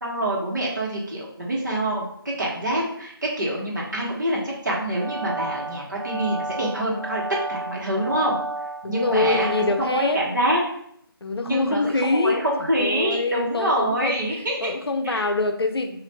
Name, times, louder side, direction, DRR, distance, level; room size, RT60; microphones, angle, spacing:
voice 1, 0.0-7.2 7.5-8.4 8.9-10.6 11.4-14.7 15.0-15.2, right 1 dB, 50° right, -3 dB, 1.1 m, -26 dB
sound 1, 4.7-10.1, right 2 dB, 75° right, 0.6 m, -32 dB
voice 2, 8.8-10.3 11.2-16.0, left 3 dB, 85° left, 6 dB, 0.5 m, -25 dB
4.0 x 2.5 x 3.2 m, 0.69 s
figure-of-eight pair, 170°, 13 cm